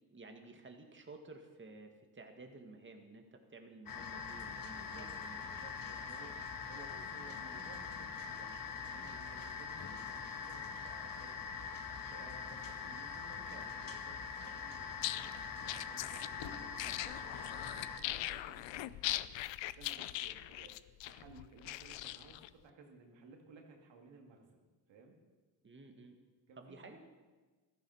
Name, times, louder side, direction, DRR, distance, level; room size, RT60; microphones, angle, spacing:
voice 1, 0.1-5.9 25.6-26.2 26.6-27.0, right 3 dB, 25° right, 4 dB, 1.8 m, -54 dB
sound 1, 3.9-18.0, left 6 dB, 50° left, 1.4 m, -43 dB
voice 2, 4.7-5.1 5.4-11.4 11.9-19.3 19.7-24.6 24.9-25.2 26.5-26.9, right 4 dB, 85° right, 2 dB, 2.3 m, -58 dB
sound 2, 14.9-22.5, left 15 dB, 85° left, 0.6 m, -41 dB
14.5 x 13.0 x 5.7 m, 1.3 s
cardioid pair, 95°, 43 cm